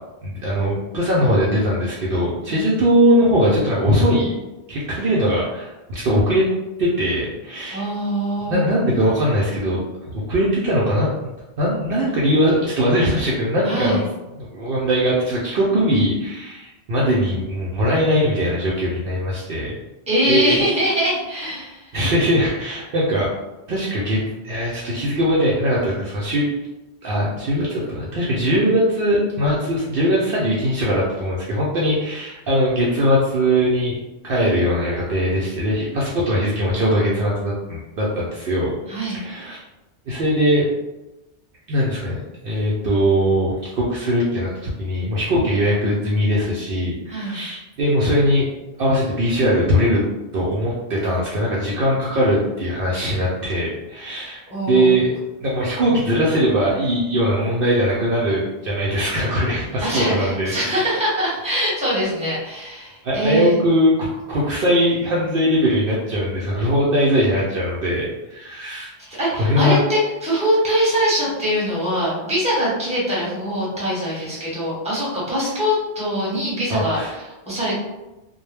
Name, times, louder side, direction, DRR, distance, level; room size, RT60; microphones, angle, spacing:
voice 1, 0.2-4.3 4.7-6.5 6.8-7.9 8.4-11.1 11.6-14.0 14.4-19.7 20.3-20.6 21.9-23.3 23.7-26.4 27.0-34.0 34.2-38.8 39.1-39.6 40.1-40.7 41.7-42.2 42.4-48.5 48.8-50.0 50.3-61.1 63.0-68.9 69.4-69.8 74.1-74.2 76.7-77.1, equal, 65° right, -5 dB, 0.7 m, -20 dB
voice 2, 7.7-8.6 13.6-14.0 20.1-21.9 38.9-39.2 47.1-47.4 54.5-55.0 59.8-63.5 69.0-77.7, equal, 5° right, -8 dB, 0.9 m, -23 dB
2.1 x 2.1 x 3.2 m, 1.0 s
omnidirectional pair, 1.1 m